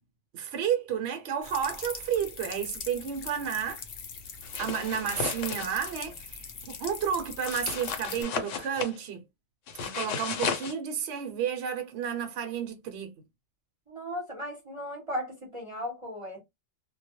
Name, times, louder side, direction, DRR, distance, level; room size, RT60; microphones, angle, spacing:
voice 1, 0.3-3.8 4.6-9.2 9.8-13.1, right 8 dB, 65° right, 0.9 m, -31 dB
sound 1, 1.4-8.2, left 5 dB, 60° left, 0.8 m, -41 dB
sound 2, 4.4-5.9 7.5-9.0 9.7-10.7, left 6 dB, 80° left, 1.0 m, -34 dB
voice 2, 13.9-16.4, equal, 30° right, 0.8 m, -36 dB
2.2 x 2.1 x 2.9 m
omnidirectional pair, 1.3 m